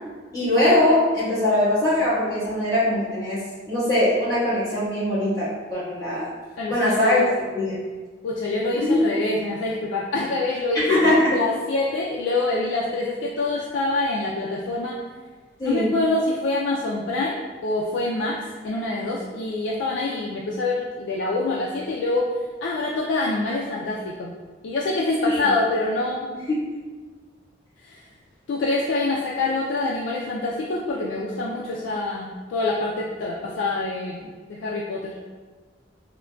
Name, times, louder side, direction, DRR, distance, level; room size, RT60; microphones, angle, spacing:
voice 1, 0.3-3.4 3.7-6.3 6.7-7.2 7.5-7.8 8.8-9.0 10.7-11.3 15.6-15.9 25.2-25.4 26.5-26.6, left 1 dB, 20° left, -12 dB, 1.3 m, -21 dB
voice 2, 6.6-7.3 8.2-15.0 15.6-17.3 17.6-18.4 18.6-22.2 22.6-24.3 24.6-26.3 27.8-28.0 28.5-35.1, left 2 dB, 75° left, -3 dB, 0.3 m, -26 dB
3.6 x 2.2 x 2.2 m, 1.4 s
head